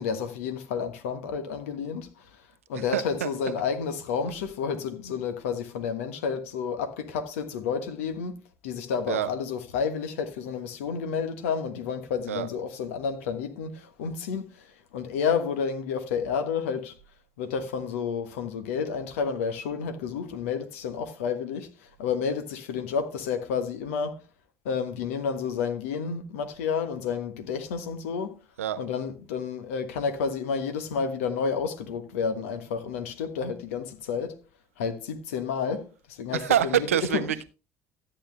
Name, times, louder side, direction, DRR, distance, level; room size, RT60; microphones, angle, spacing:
voice 1, 0.0-2.1 2.7-14.7 14.9-16.9 17.4-21.7 22.0-24.2 24.6-28.4 28.8-34.4 34.8-36.8 37.1-37.2, left 6 dB, 75° left, 1.3 m, -30 dB
voice 2, 2.7-3.5 9.1-9.3 12.3-12.5 28.6-28.8 36.3-37.4, right 10 dB, 85° right, 0.7 m, -26 dB
13.0 x 8.8 x 3.3 m
hypercardioid pair, 60°, 7 cm